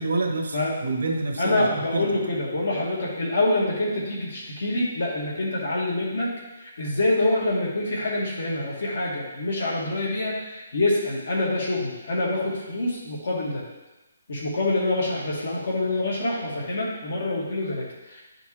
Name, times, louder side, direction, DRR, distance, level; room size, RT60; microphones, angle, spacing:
voice 1, 0.0-2.1, right 3 dB, 75° right, -1 dB, 1.3 m, -28 dB
voice 2, 1.4-6.3 6.6-13.6 14.3-18.2, left 2 dB, 50° left, -4 dB, 2.0 m, -26 dB
11.0 x 5.1 x 3.3 m, 1.1 s
hypercardioid pair, 180°, 0 cm